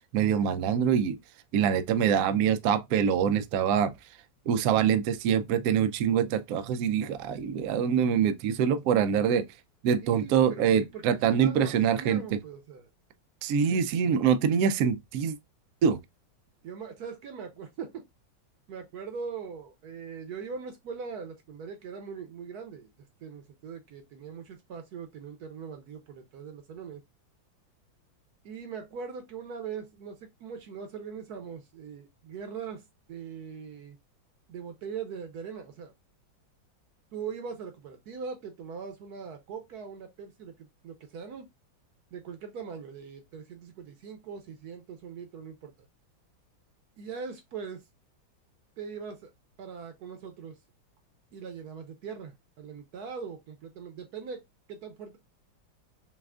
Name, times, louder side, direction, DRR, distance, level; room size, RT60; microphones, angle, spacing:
voice 1, 0.1-1.2 1.5-3.9 4.5-9.5 9.8-12.4 13.4-15.4 15.8-16.0, right 8 dB, 85° right, 0.8 m, -25 dB
voice 2, 10.0-12.9 13.7-13.8 16.6-18.0 18.7-22.9 23.2-27.0 28.4-34.0 34.5-35.9 37.1-41.5 42.1-45.7 47.0-47.8 48.8-49.3 49.6-50.6 51.3-54.4 54.7-55.2, right 6 dB, 65° right, 1.0 m, -41 dB
5.6 x 2.4 x 2.3 m
omnidirectional pair, 2.1 m